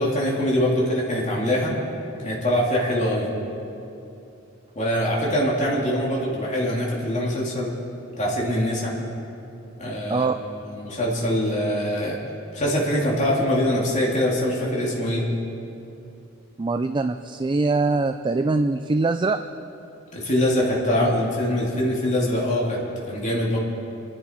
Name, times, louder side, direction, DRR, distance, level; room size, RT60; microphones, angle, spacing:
voice 1, 0.0-1.8 2.2-3.3 4.7-7.7 8.2-8.9 9.8-10.3 10.6-12.2 12.5-15.3 20.1-22.8 23.1-23.6, equal, 35° left, -4 dB, 2.7 m, -23 dB
voice 2, 16.6-19.4, right 3 dB, 25° right, 8 dB, 0.4 m, -23 dB
27.0 x 11.0 x 4.5 m, 2.8 s
head